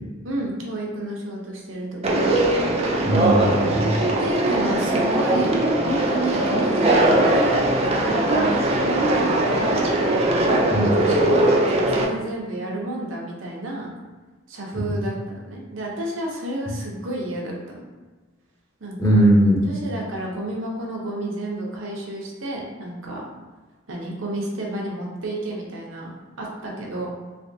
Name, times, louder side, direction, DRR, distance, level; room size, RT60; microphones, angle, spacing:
voice 1, 0.2-2.2 4.2-5.5 5.8-7.5 7.9-9.9 10.4-13.9 14.5-17.9 18.8-19.2 19.6-23.3 23.9-26.1 26.4-27.1, right 1 dB, 70° right, -2 dB, 0.8 m, -31 dB
Conversation, 2.0-12.0, right 1 dB, 30° right, 0.4 m, -20 dB
voice 2, 3.0-4.0 10.7-11.0 14.7-15.0 19.0-19.6, right 1 dB, 15° left, -5 dB, 0.8 m, -19 dB
3.4 x 3.1 x 2.7 m, 1.3 s
head